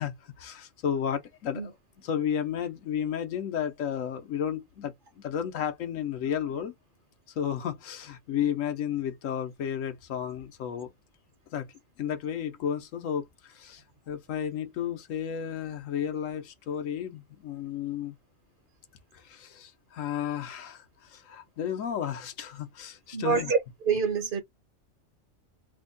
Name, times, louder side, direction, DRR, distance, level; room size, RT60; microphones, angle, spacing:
voice 1, 0.0-6.7 7.4-10.9 11.5-11.7 12.0-18.2 19.1-23.5, left 9 dB, 90° left, 1.1 m, -33 dB
voice 2, 23.1-23.6 23.8-24.4, right 5 dB, 50° right, 0.8 m, -25 dB
3.4 x 2.2 x 3.8 m
omnidirectional pair, 1.3 m